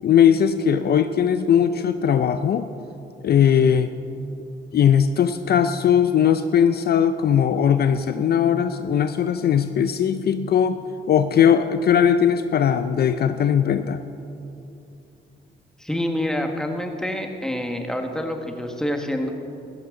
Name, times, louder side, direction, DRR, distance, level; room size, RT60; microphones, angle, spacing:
voice 1, 0.0-2.7 3.2-3.9 4.7-10.8 11.1-14.0, left 8 dB, 55° left, 10 dB, 0.5 m, -19 dB
voice 2, 15.8-19.3, left 1 dB, 5° left, 3 dB, 1.6 m, -27 dB
16.0 x 14.0 x 3.8 m, 2.7 s
cardioid pair, 90°, 20 cm